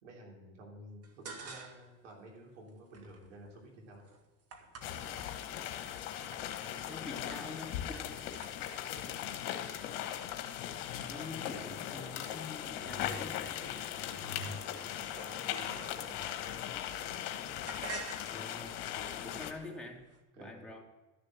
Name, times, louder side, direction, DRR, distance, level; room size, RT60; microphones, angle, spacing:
voice 1, 0.0-4.1 15.1-16.2 20.3-20.6, right 1 dB, 85° right, -1 dB, 3.2 m, -51 dB
sound 1, 1.0-2.0 2.3-5.9 6.3-6.8 7.1-7.5 7.8-12.9 13.5-16.7 17.0-20.2, right 3 dB, 40° right, 1.9 m, -51 dB
sound 2, 4.8-19.5, left 10 dB, 65° left, 1.4 m, -39 dB
voice 2, 6.8-8.0 11.1-13.8 18.2-20.1 20.4-20.8, left 3 dB, 5° left, -1 dB, 3.0 m, -46 dB
12.5 x 6.7 x 7.7 m, 1.2 s
hypercardioid pair, 70°, 36 cm